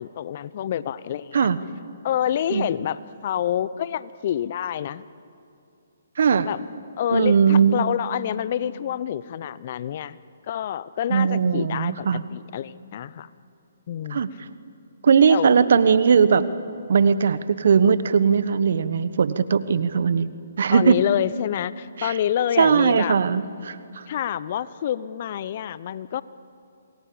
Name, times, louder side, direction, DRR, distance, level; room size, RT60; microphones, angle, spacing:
voice 1, 0.0-1.5 2.0-5.0 6.4-6.6 7.0-10.2 10.5-13.3 13.9-14.2 15.3-15.5 20.7-23.2 24.1-26.2, left 10 dB, 45° left, 17 dB, 0.8 m, -27 dB
voice 2, 6.2-6.5 7.1-7.8 11.1-12.2 14.1-14.3 15.0-16.4 16.9-20.3 20.6-21.0 22.0-22.2 22.6-23.8, right 6 dB, 65° right, 14 dB, 1.3 m, -19 dB
28.0 x 20.5 x 8.7 m, 2.6 s
hypercardioid pair, 140°, 0 cm